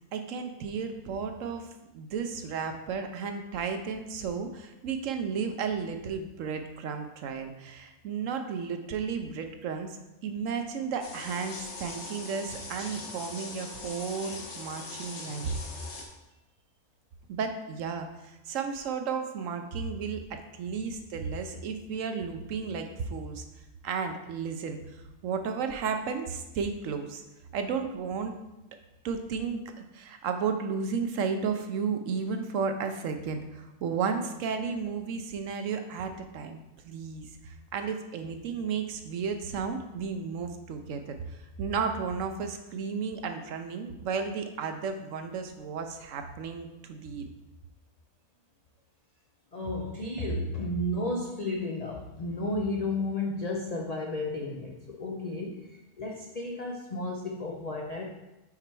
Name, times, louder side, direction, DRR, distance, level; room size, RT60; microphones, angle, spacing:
voice 1, 0.1-1.7 1.9-15.5 17.3-23.4 23.8-24.8 25.2-27.2 27.5-28.3 29.0-29.6 29.9-47.2, right 5 dB, 65° right, 6 dB, 0.9 m, -33 dB
sound 1, 11.0-16.1, left 3 dB, 55° left, 1.1 m, -41 dB
voice 2, 49.5-58.1, left 2 dB, 75° left, 0 dB, 0.3 m, -33 dB
5.9 x 4.4 x 4.6 m, 0.98 s
omnidirectional pair, 1.6 m